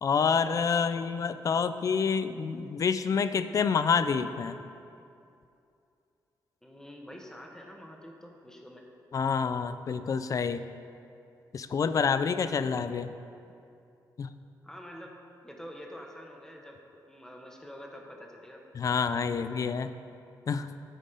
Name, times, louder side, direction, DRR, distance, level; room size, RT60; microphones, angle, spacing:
voice 1, 0.0-4.6 9.1-10.6 11.5-13.1 14.2-14.3 18.7-19.9 20.5-20.7, left 6 dB, 50° left, 12 dB, 0.4 m, -28 dB
voice 2, 0.7-1.1 6.6-8.9 14.6-16.8 17.1-18.6 19.5-19.6, equal, 5° left, 1 dB, 1.1 m, -47 dB
9.9 x 4.2 x 5.2 m, 2.6 s
cardioid pair, 70°, 8 cm